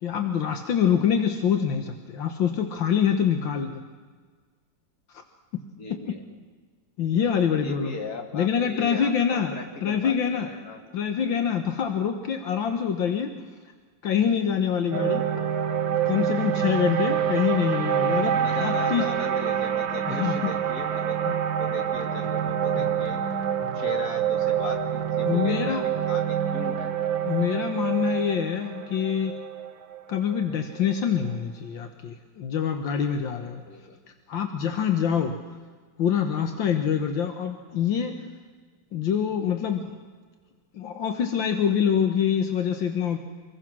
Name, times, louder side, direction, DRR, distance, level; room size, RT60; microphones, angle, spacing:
voice 1, 0.0-3.8 5.1-5.2 5.5-5.6 7.0-8.0 8.3-9.6 9.8-10.5 10.9-13.3 14.0-15.2 16.1-19.0 20.1-20.5 21.3-21.4 22.8-22.9 25.3-25.8 27.2-29.4 30.1-33.6 34.3-35.4 36.0-38.3 38.9-40.0 40.7-43.2, left 8 dB, 80° left, 6 dB, 2.0 m, -25 dB
voice 2, 5.8-6.2 7.6-10.8 11.3-11.4 18.3-23.2 23.7-25.8 26.1-26.9 33.7-34.0, left 3 dB, 55° left, 3 dB, 2.9 m, -38 dB
sound 1, 14.9-31.2, right 9 dB, 85° right, 2.0 m, -27 dB
26.0 x 21.0 x 6.2 m, 1.5 s
omnidirectional pair, 2.1 m